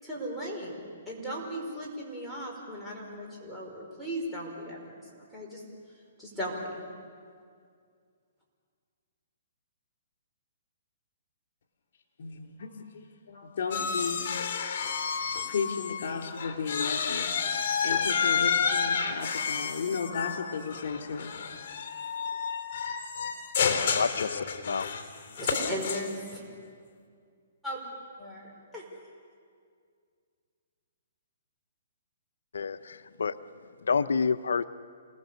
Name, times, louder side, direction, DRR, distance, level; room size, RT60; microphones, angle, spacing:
voice 1, 0.0-0.8 1.1-4.8 5.3-5.6 6.2-6.8 25.4-26.4 27.6-27.8 28.2-28.8, equal, ahead, -6 dB, 5.2 m, -37 dB
voice 2, 12.2-12.7 13.3-14.8 15.5-17.3 17.8-21.3, left 5 dB, 65° left, 3 dB, 3.9 m, -34 dB
sound 1, 13.7-16.1 16.4-26.3, left 6 dB, 45° left, 3.4 m, -30 dB
voice 3, 24.0-24.9 32.5-33.3 33.9-34.6, left 5 dB, 85° left, 12 dB, 0.6 m, -28 dB
28.5 x 19.5 x 7.1 m, 2.1 s
hypercardioid pair, 145°, 0 cm